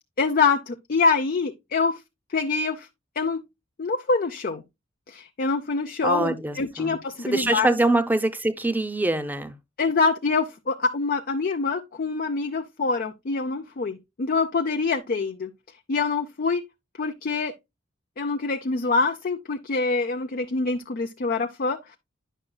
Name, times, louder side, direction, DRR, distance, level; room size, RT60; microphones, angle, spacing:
voice 1, 0.2-2.0 2.3-2.9 3.2-3.4 3.8-4.6 5.1-7.7 9.8-15.5 15.9-16.6 17.0-17.5 18.2-22.0, left 4 dB, 45° left, 0.5 m, -25 dB
voice 2, 6.0-7.0 7.2-9.5, right 2 dB, 10° right, 0.6 m, -24 dB
10.0 x 6.0 x 2.3 m
head